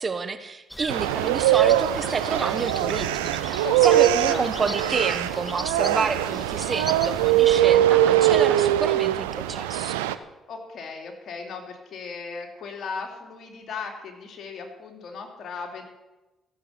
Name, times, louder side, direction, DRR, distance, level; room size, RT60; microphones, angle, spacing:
voice 1, 0.0-10.0, right 4 dB, 40° right, 10 dB, 1.3 m, -29 dB
sound 1, 0.7-7.6, left 1 dB, 5° left, 1.0 m, -39 dB
sound 2, 0.9-10.1, right 12 dB, 90° right, 0.5 m, -22 dB
voice 2, 3.6-4.5 10.5-15.8, left 4 dB, 60° left, 3 dB, 3.0 m, -37 dB
15.0 x 7.3 x 8.3 m, 1.1 s
hypercardioid pair, 50°, 0 cm